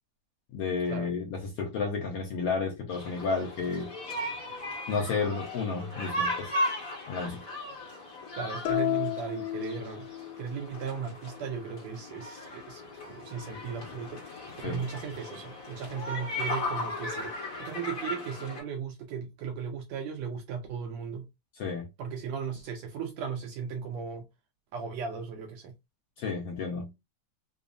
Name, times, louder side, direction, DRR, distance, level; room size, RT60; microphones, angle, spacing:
voice 1, 0.5-3.9 4.9-6.5 7.1-7.4 14.6-14.8 21.6-21.9 26.2-26.9, left 4 dB, 65° left, 1.6 m, -31 dB
sound 1, 2.9-18.6, left 1 dB, 45° left, 1.1 m, -37 dB
voice 2, 8.3-10.1 10.4-21.3 22.0-24.3 24.7-25.7, right 6 dB, 75° right, 1.6 m, -37 dB
sound 2, 8.7-10.5, left 14 dB, 85° left, 2.1 m, -31 dB
5.4 x 2.0 x 2.5 m
omnidirectional pair, 3.5 m